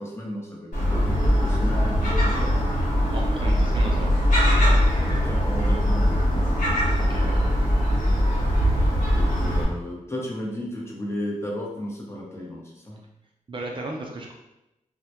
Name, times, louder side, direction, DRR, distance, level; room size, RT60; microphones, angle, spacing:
voice 1, 0.0-2.5 3.6-4.1 4.9-6.8 9.1-13.0, left 1 dB, 20° left, -3 dB, 0.7 m, -35 dB
Gull seagull, 0.7-9.6, equal, 70° left, 1.0 m, -21 dB
voice 2, 3.1-4.1 4.4-4.8 6.9-7.4 13.5-14.3, right 2 dB, 40° right, -1 dB, 0.4 m, -35 dB
2.1 x 2.1 x 2.7 m, 0.92 s
cardioid pair, 60°, 14 cm